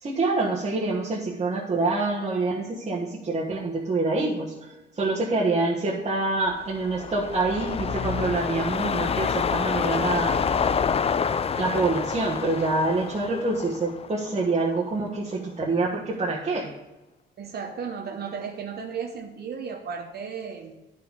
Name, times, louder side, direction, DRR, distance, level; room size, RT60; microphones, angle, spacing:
voice 1, 0.0-10.3 11.6-16.7, right 3 dB, 35° right, -5 dB, 1.4 m, -26 dB
sound 1, 6.5-14.9 15.3-15.4, left 6 dB, 30° left, 0.4 m, -28 dB
voice 2, 17.4-20.8, right 6 dB, 55° right, 3 dB, 1.0 m, -34 dB
10.0 x 5.2 x 5.1 m, 1.0 s
cardioid pair, 90°, 20 cm